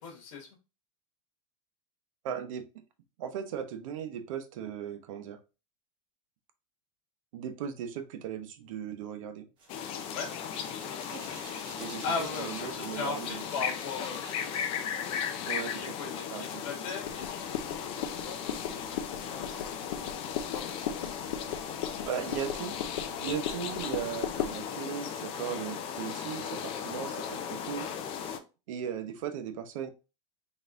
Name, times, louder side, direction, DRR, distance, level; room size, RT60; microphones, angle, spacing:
voice 1, 0.0-0.5 10.1-10.3 11.9-14.4 15.8-19.9 20.2-21.2, left 4 dB, 65° left, -1 dB, 1.8 m, -39 dB
voice 2, 2.2-2.6 3.2-5.4 7.3-9.5 11.8-12.0 12.4-13.4 15.4-15.8 16.3-16.6 22.0-22.7 23.2-27.9 28.7-29.9, right 8 dB, 75° right, 9 dB, 0.8 m, -37 dB
Hands, 9.6-14.6 14.9-15.8, right 3 dB, 30° right, 1.2 m, -51 dB
sound 1, 9.7-28.4, left 8 dB, 35° left, 0.5 m, -37 dB
sound 2, 17.0-24.7, left 9 dB, 80° left, 0.6 m, -38 dB
3.9 x 3.5 x 2.5 m, 0.30 s
supercardioid pair, 160°, 17 cm